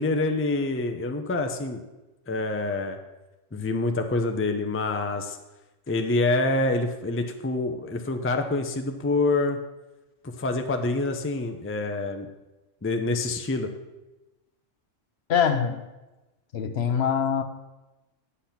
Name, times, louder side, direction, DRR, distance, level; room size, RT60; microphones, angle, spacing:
voice 1, 0.0-1.8 2.3-3.0 3.5-5.4 5.9-9.6 10.2-12.3 12.8-13.7, left 2 dB, 15° left, 5 dB, 0.5 m, -26 dB
voice 2, 15.3-15.8 16.5-17.4, left 7 dB, 60° left, 9 dB, 0.9 m, -23 dB
8.4 x 7.0 x 5.8 m, 1.0 s
omnidirectional pair, 1.3 m